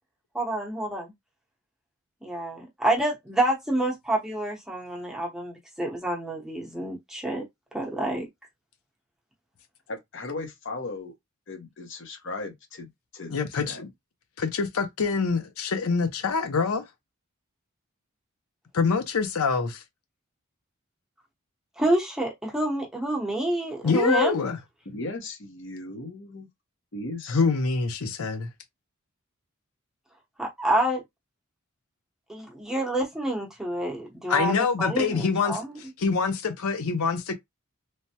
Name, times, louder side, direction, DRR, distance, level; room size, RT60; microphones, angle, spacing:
voice 1, 0.3-1.1 2.2-7.4 7.7-8.2 21.8-24.5 30.4-31.0 32.3-35.8, right 1 dB, ahead, 0.8 m, -28 dB
voice 2, 9.9-11.1 11.5-13.8 24.8-26.5 26.9-27.4, left 2 dB, 60° left, 0.9 m, -37 dB
voice 3, 13.3-13.9 14.4-16.8 18.7-19.8 23.8-24.6 27.3-28.5 34.3-35.6 36.0-37.3, left 5 dB, 85° left, 0.6 m, -25 dB
3.2 x 2.1 x 2.8 m
head